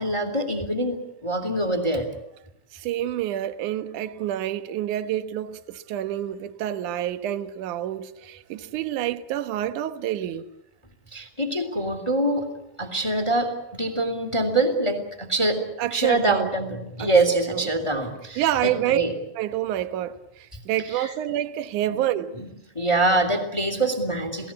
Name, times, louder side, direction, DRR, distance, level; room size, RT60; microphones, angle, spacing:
voice 1, 0.0-2.1 11.1-12.5 12.8-15.6 15.9-19.1 20.9-21.1 21.9-22.0 22.4-22.5 22.7-24.5, right 2 dB, 10° left, 1.9 m, -24 dB
voice 2, 2.7-10.5 15.8-16.5 17.0-17.1 17.5-17.7 18.4-19.1 19.4-22.3, right 12 dB, 65° right, 2.1 m, -28 dB
30.0 x 18.5 x 8.5 m
omnidirectional pair, 4.8 m